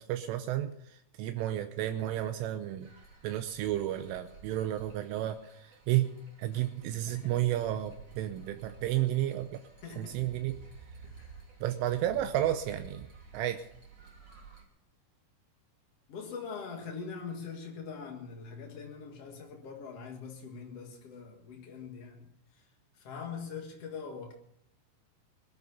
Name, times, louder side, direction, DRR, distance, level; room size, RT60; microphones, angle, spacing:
voice 1, 0.1-0.7 1.2-2.9 3.2-6.1 6.4-9.6 10.0-10.6 11.6-13.1 13.3-13.6, right 13 dB, 80° right, 3.3 m, -32 dB
sound 1, 2.8-14.6, right 5 dB, 30° right, 2.5 m, -53 dB
voice 2, 7.1-7.4 9.8-10.4 11.0-11.4 16.1-22.6 23.0-24.3, left 5 dB, 75° left, 1.4 m, -43 dB
21.5 x 12.0 x 4.1 m
omnidirectional pair, 5.8 m